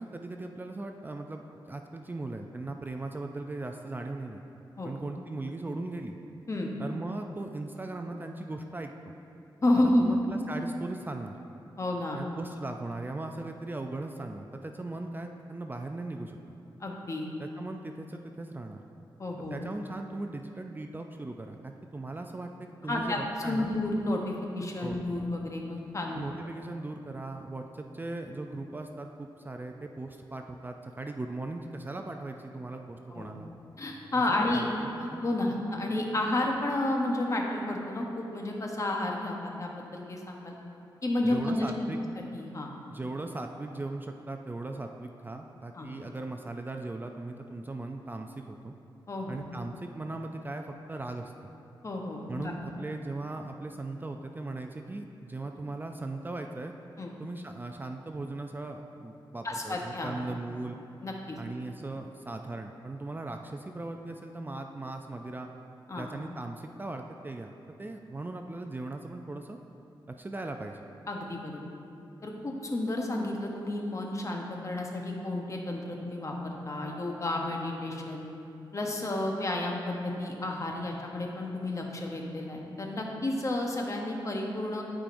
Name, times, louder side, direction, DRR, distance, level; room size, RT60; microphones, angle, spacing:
voice 1, 0.0-4.4 4.8-6.2 6.8-9.1 9.8-11.4 12.1-16.6 17.4-18.8 19.5-23.7 24.8-25.0 26.1-33.5 34.3-34.7 35.1-35.2 41.2-42.0 42.9-48.7 49.3-51.3 52.3-56.7 57.2-60.8 61.4-65.5 65.9-67.5 67.8-69.6 70.1-70.8, right 2 dB, 25° right, 4 dB, 0.4 m, -38 dB
voice 2, 9.6-10.1 11.8-12.2 16.8-17.3 19.2-19.6 22.9-26.2 33.1-33.3 33.8-34.7 35.0-40.6 41.0-41.9 42.3-42.7 45.7-45.9 49.1-49.4 51.8-52.5 57.0-57.1 59.4-60.2 61.0-61.4 65.9-66.1 71.1-71.6 72.2-78.3 78.7-84.8, left 1 dB, 40° left, 0 dB, 0.9 m, -31 dB
12.0 x 4.9 x 2.6 m, 2.7 s
cardioid pair, 80°, 9 cm